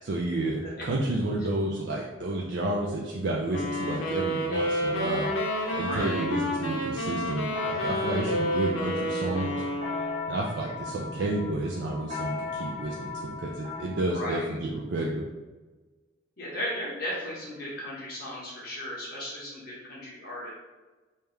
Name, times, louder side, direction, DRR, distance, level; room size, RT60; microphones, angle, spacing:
voice 1, 0.1-5.3 5.7-9.6 10.3-15.2, right 2 dB, 60° right, -3 dB, 0.4 m, -31 dB
sound 1, 3.5-10.3, equal, 80° left, 0.7 m, -30 dB
sound 2, 4.8-14.0, left 3 dB, 35° right, 1.3 m, -37 dB
voice 2, 5.8-6.3 8.2-8.7 14.1-14.4 16.4-20.5, equal, 50° left, -6 dB, 1.3 m, -36 dB
3.4 x 2.8 x 3.3 m, 1.2 s
head